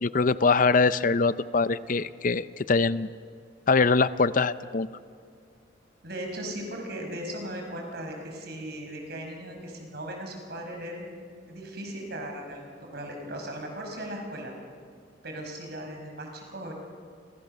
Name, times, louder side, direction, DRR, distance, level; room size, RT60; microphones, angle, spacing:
voice 1, 0.0-3.1 3.7-4.9, left 4 dB, 45° left, 15 dB, 0.6 m, -23 dB
voice 2, 6.0-11.2 11.5-12.6 12.9-14.5 15.2-16.7, right 1 dB, 60° right, 2 dB, 5.9 m, -37 dB
30.0 x 26.0 x 6.8 m, 2.3 s
head